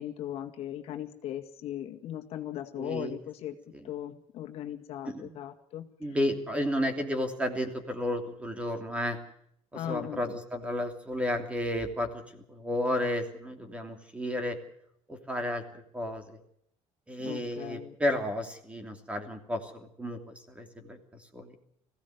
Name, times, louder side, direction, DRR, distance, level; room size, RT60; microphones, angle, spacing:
voice 1, 0.0-3.6 3.8-5.9 9.7-10.3 17.2-18.0, left 11 dB, 60° left, 5 dB, 2.0 m, -38 dB
voice 2, 2.8-3.2 5.1-5.3 6.0-9.2 9.7-14.6 15.1-15.6 15.9-16.4 17.1-21.0 21.3-21.5, left 1 dB, 10° right, 6 dB, 3.0 m, -32 dB
21.5 x 16.5 x 8.1 m, 0.70 s
cardioid pair, 150°, 12 cm